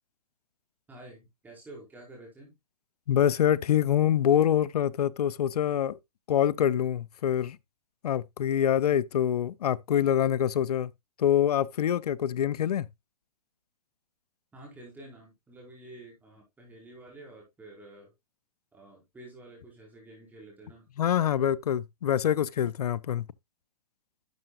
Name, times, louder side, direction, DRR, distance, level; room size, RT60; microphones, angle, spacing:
voice 1, 0.9-2.5 14.5-18.1 18.7-20.9, right 2 dB, 10° right, 5.2 m, -49 dB
voice 2, 3.1-6.0 6.3-7.6 8.0-10.9 11.2-12.9 21.0-23.3, left 10 dB, 80° left, 0.6 m, -25 dB
12.0 x 7.6 x 2.4 m
hypercardioid pair, 145°, 20 cm